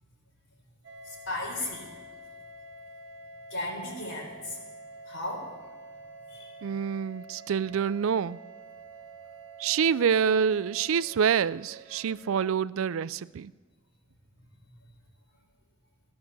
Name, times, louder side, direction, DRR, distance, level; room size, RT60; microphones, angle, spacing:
sound 1, 0.8-12.5, right 2 dB, 65° right, 1.3 m, -48 dB
voice 1, 1.0-1.9 3.5-4.6 5.0-5.5 6.3-6.6 14.7-14.8, left 1 dB, 70° left, 4.5 m, -35 dB
voice 2, 6.6-8.4 9.6-13.5, right 7 dB, 90° right, 0.4 m, -26 dB
16.0 x 11.5 x 6.9 m
head